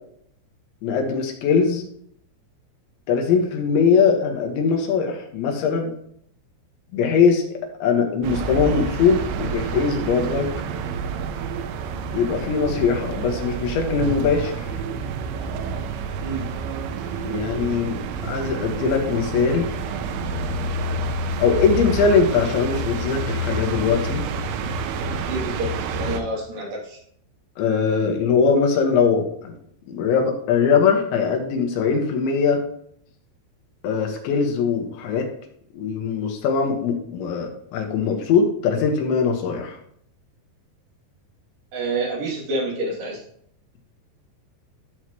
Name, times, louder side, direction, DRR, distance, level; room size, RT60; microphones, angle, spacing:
voice 1, 0.8-1.8 3.1-5.9 6.9-10.5 12.1-14.7 17.2-19.7 21.4-24.2 27.6-29.6 29.9-32.6 33.8-35.3 35.7-39.8, left 5 dB, 80° left, 2 dB, 3.8 m, -21 dB
sound 1, 8.2-26.2, right 3 dB, 90° right, 3.2 m, -28 dB
voice 2, 16.2-16.5 25.2-27.0 41.7-43.2, right 2 dB, 50° right, -4 dB, 4.2 m, -28 dB
13.0 x 6.6 x 3.1 m, 0.67 s
omnidirectional pair, 5.3 m